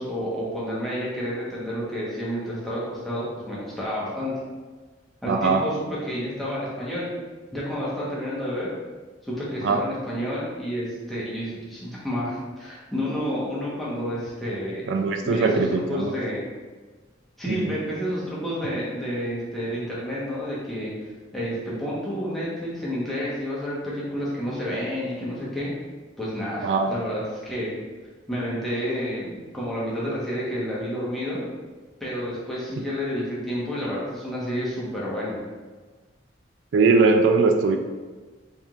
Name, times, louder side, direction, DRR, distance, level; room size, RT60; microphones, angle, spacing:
voice 1, 0.0-4.4 5.2-7.1 7.5-8.7 9.2-14.8 15.2-16.4 17.4-20.9 21.3-25.7 26.2-27.7 28.3-31.4 32.0-35.4, equal, ahead, -8 dB, 1.1 m, -30 dB
voice 2, 5.2-5.7 9.6-9.8 14.9-16.1 17.5-17.8 26.6-26.9 36.7-37.8, right 4 dB, 75° right, 4 dB, 0.3 m, -20 dB
4.3 x 3.5 x 2.4 m, 1.4 s
head